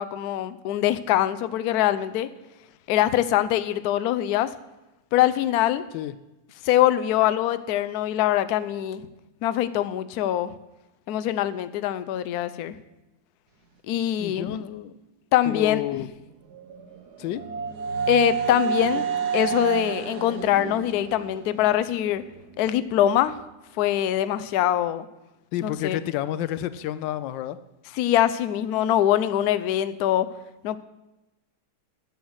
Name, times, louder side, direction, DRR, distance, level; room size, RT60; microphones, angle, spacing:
voice 1, 0.0-2.3 2.9-4.5 5.1-5.8 6.6-9.1 9.4-10.5 11.1-12.8 13.9-14.5 15.3-16.0 18.1-19.1 19.3-22.2 22.6-23.4 23.8-25.1 25.6-26.0 28.0-30.3 30.6-30.8, left 12 dB, 70° left, 13 dB, 1.0 m, -23 dB
voice 2, 14.2-14.9 15.4-16.1 17.2-17.4 25.5-27.6, left 12 dB, 90° left, 14 dB, 1.3 m, -30 dB
sound 1, 16.5-22.4, right 6 dB, 65° right, 1.6 m, -29 dB
11.5 x 6.3 x 8.0 m, 0.99 s
omnidirectional pair, 1.9 m